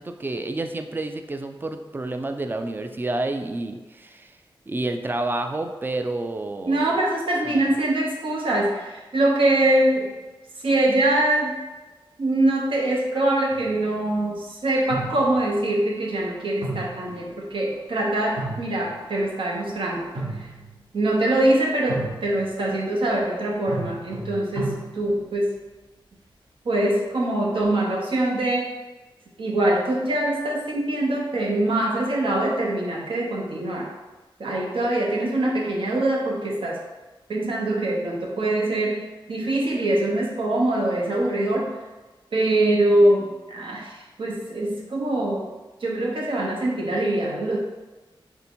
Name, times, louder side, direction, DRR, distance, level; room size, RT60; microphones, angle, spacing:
voice 1, 0.0-4.4 4.7-6.9 7.5-7.7, right 2 dB, 20° right, 7 dB, 0.3 m, -29 dB
voice 2, 6.7-10.1 10.6-11.5 12.2-20.1 20.4-20.5 20.9-25.5 26.6-28.7 29.4-33.9 34.4-36.8 37.3-41.7 42.3-45.4 45.8-47.6, right 1 dB, 75° right, -3 dB, 0.8 m, -23 dB
sound 1, 13.5-14.0 14.9-15.6 16.6-17.8 18.1-19.3 20.0-20.8 21.9-22.6 23.7-25.3, right 2 dB, 55° right, 1.0 m, -34 dB
3.4 x 2.7 x 4.3 m, 1.2 s
wide cardioid pair, 90°, 9 cm